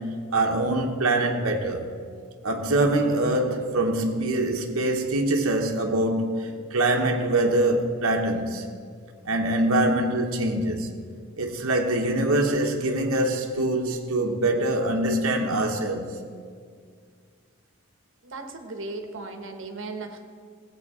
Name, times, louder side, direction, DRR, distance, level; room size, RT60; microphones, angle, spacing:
voice 1, 0.0-1.9 2.4-8.6 9.2-11.0 11.4-16.2, right 1 dB, 80° right, 1.0 m, -24 dB
voice 2, 18.2-20.2, right 3 dB, 60° right, 1.2 m, -36 dB
17.5 x 8.1 x 4.8 m
head